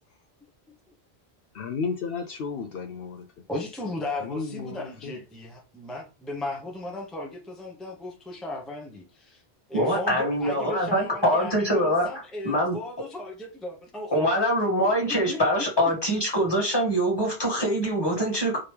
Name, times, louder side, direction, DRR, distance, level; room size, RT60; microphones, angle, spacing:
voice 1, 1.5-3.3 4.2-5.1, left 5 dB, 65° left, 0.8 m, -33 dB
voice 2, 3.5-9.4 9.7-14.3 14.8-14.9 15.3-15.4, left 2 dB, ahead, 0.8 m, -35 dB
voice 3, 9.7-12.1 12.4-12.8 14.1-18.6, equal, 25° left, 1.8 m, -24 dB
5.1 x 2.8 x 3.3 m
omnidirectional pair, 1.1 m